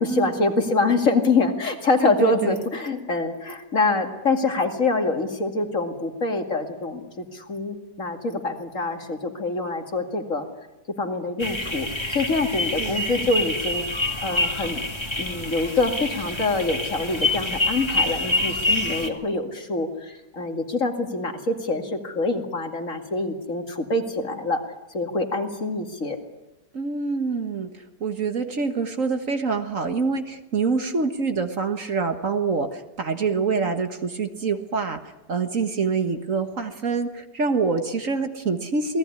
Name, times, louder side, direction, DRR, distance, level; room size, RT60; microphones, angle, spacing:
voice 1, 0.0-10.5 11.0-11.9 12.1-13.8 14.2-14.9 15.2-24.6 24.9-26.2, left 3 dB, 50° left, 4 dB, 2.7 m, -25 dB
voice 2, 2.0-2.6 12.8-13.3 26.7-27.7 28.0-35.0 35.3-39.0, right 4 dB, 50° right, 7 dB, 1.8 m, -26 dB
sound 1, 11.4-19.1, left 2 dB, 15° left, 2.3 m, -26 dB
28.0 x 19.0 x 9.8 m, 1.0 s
omnidirectional pair, 1.8 m